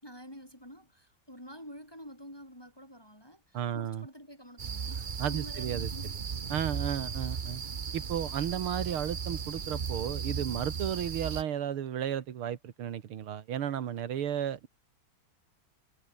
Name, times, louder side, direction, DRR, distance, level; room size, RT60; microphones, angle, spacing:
voice 1, 0.0-6.2, equal, 10° left, 6.3 m, -48 dB
voice 2, 3.5-4.1 5.2-5.9 6.5-7.6 7.9-14.7, right 9 dB, 85° right, 2.3 m, -33 dB
sound 1, 4.6-11.4, right 6 dB, 55° right, 0.5 m, -36 dB
omnidirectional pair, 2.3 m